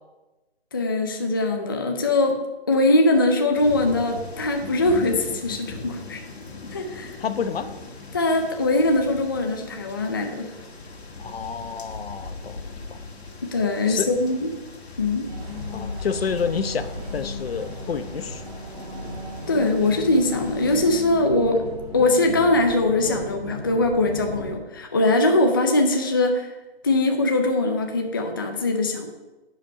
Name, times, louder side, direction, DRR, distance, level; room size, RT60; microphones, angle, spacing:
voice 1, 0.7-2.4 2.7-6.2 6.7-7.2 8.1-10.6 13.4-14.5 15.0-15.3 19.5-21.6 21.9-26.6 26.8-29.1, left 2 dB, 20° left, 3 dB, 0.4 m, -21 dB
sound 1, 3.5-20.8, left 3 dB, 85° left, 1.9 m, -39 dB
voice 2, 7.2-7.7 11.2-13.0 13.9-14.1 15.7-18.4, left 6 dB, 70° left, 11 dB, 0.8 m, -29 dB
sound 2, 15.3-24.6, left 1 dB, 35° right, 2.7 m, -36 dB
10.0 x 5.2 x 5.6 m, 1.1 s
hypercardioid pair, 165°, 31 cm